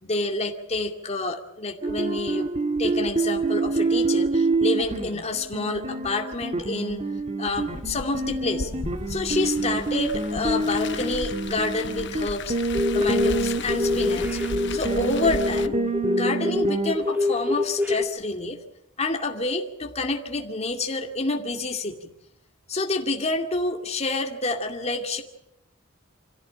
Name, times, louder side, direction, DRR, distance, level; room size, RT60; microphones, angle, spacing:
voice 1, 0.0-2.5 2.8-7.0 7.4-8.7 9.1-12.6 12.9-14.4 14.7-15.8 16.1-18.6 19.0-22.1 22.7-25.2, left 2 dB, 30° left, 3 dB, 2.3 m, -28 dB
sound 1, 1.8-17.0, right 3 dB, 30° right, 1.6 m, -27 dB
Car, 7.5-15.7, left 4 dB, 60° left, 0.9 m, -36 dB
sound 2, 12.7-13.3 13.7-18.0, left 3 dB, 10° right, 1.7 m, -25 dB
26.0 x 16.0 x 8.8 m, 0.82 s
head